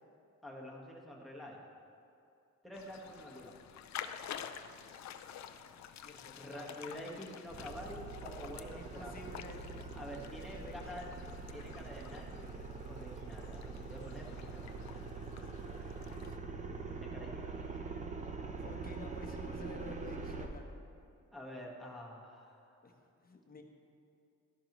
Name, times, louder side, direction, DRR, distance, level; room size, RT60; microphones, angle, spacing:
voice 1, 0.4-1.6 2.6-3.6 4.0-4.5 5.9-9.1 9.9-11.1 11.5-12.5 12.9-14.8 15.7-16.1 16.9-17.9 21.3-22.7 23.4-23.6, equal, ahead, -2 dB, 1.5 m, -48 dB
sound 1, 2.7-16.4, left 9 dB, 70° left, 0.5 m, -50 dB
voice 2, 6.0-6.7 8.7-9.6 10.3-11.1 16.0-16.8 18.6-20.8 22.8-22.9 23.2-23.6, left 2 dB, 30° left, 2 dB, 1.1 m, -51 dB
sound 2, 7.5-20.5, right 4 dB, 25° right, 0.8 m, -44 dB
13.5 x 11.0 x 3.1 m, 2.6 s
wide cardioid pair, 140°, 29 cm